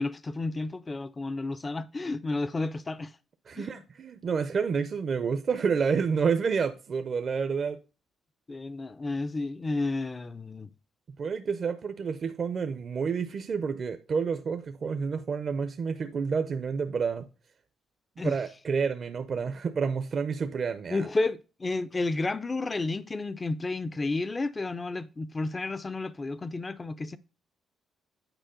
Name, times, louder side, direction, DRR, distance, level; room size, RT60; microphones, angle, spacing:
voice 1, 0.0-3.1 3.6-3.7 8.5-10.7 18.2-18.4 20.9-27.2, left 3 dB, 25° left, 0.5 m, -31 dB
voice 2, 3.5-7.8 11.2-17.3 18.2-21.1, right 5 dB, 50° right, 0.6 m, -29 dB
9.0 x 4.8 x 3.7 m
cardioid pair, 90°, 0 cm